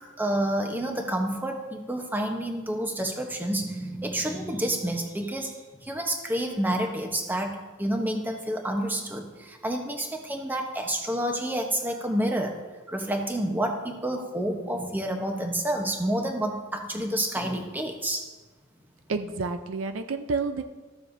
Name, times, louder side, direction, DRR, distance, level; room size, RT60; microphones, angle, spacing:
voice 1, 0.2-5.5 5.8-12.6 12.9-18.3, right 1 dB, 10° right, 3 dB, 0.9 m, -29 dB
voice 2, 19.1-20.6, right 4 dB, 65° right, 8 dB, 0.5 m, -29 dB
14.0 x 7.3 x 2.6 m, 1.3 s
head